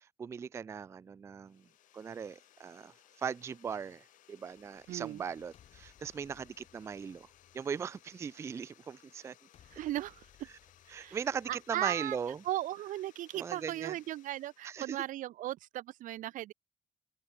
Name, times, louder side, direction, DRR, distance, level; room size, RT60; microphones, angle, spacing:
voice 1, 0.0-1.6 1.9-7.3 7.5-9.3 10.9-12.4 13.3-13.9 14.6-15.0, right 7 dB, 20° right, 0.3 m, -39 dB
sound 1, 1.4-14.9, left 13 dB, 85° left, 4.0 m, -63 dB
sound 2, 4.3-8.4 9.5-12.4, left 10 dB, 50° left, 5.5 m, -64 dB
voice 2, 4.9-5.2 9.6-10.5 10.9-11.2 11.5-12.2 12.4-16.5, right 14 dB, 85° right, 1.1 m, -37 dB
cardioid pair, 175°, 13 cm